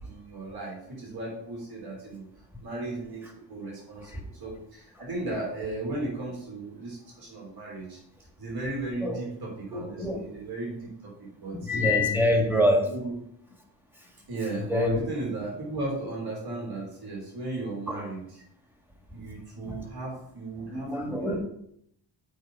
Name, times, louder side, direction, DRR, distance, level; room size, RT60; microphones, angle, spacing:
voice 1, 0.0-2.2 2.6-3.2 3.5-8.0 8.4-11.8 12.3-13.2 14.3-18.4 19.1-21.4, right 2 dB, 50° right, -4 dB, 3.4 m, -36 dB
voice 2, 9.7-10.3 11.6-12.9 14.6-15.0 17.9-18.0 19.7-19.8 20.7-21.4, left 1 dB, 5° right, 1 dB, 1.7 m, -25 dB
8.1 x 4.9 x 4.8 m, 0.72 s
wide cardioid pair, 125°, 45 cm